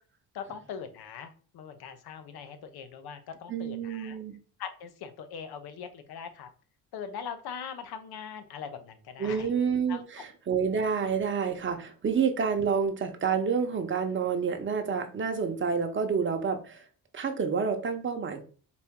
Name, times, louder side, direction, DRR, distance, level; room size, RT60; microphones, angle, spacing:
voice 1, 0.3-4.2 4.6-6.5 6.9-9.5 9.9-10.0, left 7 dB, 70° left, 9 dB, 0.8 m, -41 dB
voice 2, 3.5-4.3 9.2-16.8 17.1-18.4, right 6 dB, 30° right, 5 dB, 0.8 m, -28 dB
4.2 x 2.8 x 3.5 m, 0.40 s
cardioid pair, 100°, 39 cm